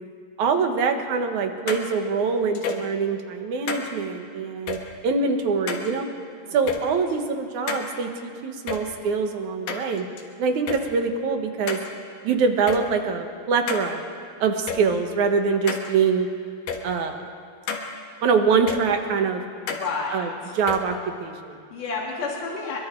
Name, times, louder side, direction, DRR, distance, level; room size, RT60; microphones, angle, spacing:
voice 1, 0.4-6.1 6.5-10.1 10.4-11.8 12.2-14.0 14.4-16.3 16.8-17.3 18.2-19.4 20.1-20.3 20.6-21.5, right 5 dB, 65° right, 5 dB, 2.5 m, -24 dB
sound 1, 1.7-1.8 2.6-2.9 3.7-3.8 4.7-4.8 5.7-5.9 6.7-6.8 7.7-7.8 8.7-8.8 9.7-10.2 10.7-10.8 11.7-11.9 12.7-12.8 13.7-13.8 14.7-14.8 15.7-15.9 16.7-16.8 17.7-17.8 18.7-18.8 19.7-19.9 20.7-20.8, left 6 dB, 80° left, 3.4 m, -29 dB
voice 2, 6.5-6.8 19.7-20.6 21.7-22.8, left 4 dB, 65° left, -3 dB, 4.6 m, -31 dB
27.0 x 22.5 x 4.6 m, 2.4 s
omnidirectional pair, 4.0 m